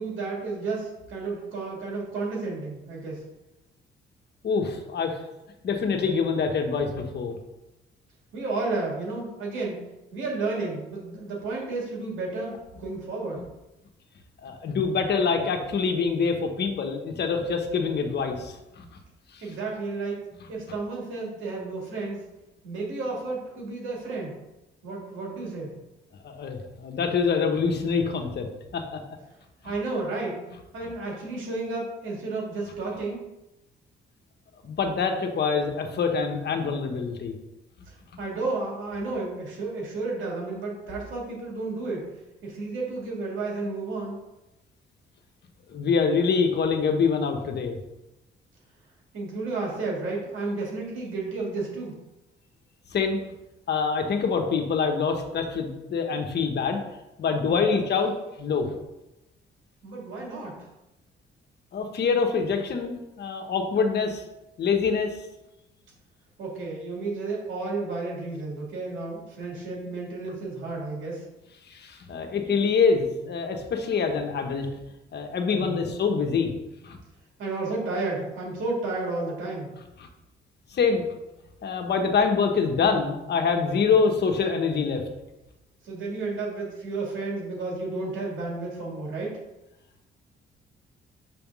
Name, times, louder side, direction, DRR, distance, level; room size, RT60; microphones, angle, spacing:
voice 1, 0.0-3.3 8.3-13.5 15.3-15.4 19.4-22.2 22.6-24.4 24.8-25.7 29.6-30.4 30.7-33.3 37.9-42.1 42.4-44.2 49.1-51.9 57.5-57.8 59.8-60.7 66.4-71.3 75.5-75.9 77.4-79.7 85.8-89.4, right 3 dB, 80° right, -3 dB, 2.4 m, -32 dB
voice 2, 4.4-5.2 5.6-7.4 14.4-18.9 19.3-19.4 26.2-28.5 28.7-29.0 34.6-37.3 45.7-47.8 52.9-53.2 53.7-56.8 57.2-58.1 58.4-58.7 61.7-64.2 64.6-65.1 71.7-74.7 75.1-76.5 76.8-77.0 80.7-81.0 81.6-85.0, left 5 dB, 55° left, 4 dB, 1.1 m, -25 dB
6.2 x 3.5 x 6.0 m, 0.97 s
cardioid pair, 90°, 20 cm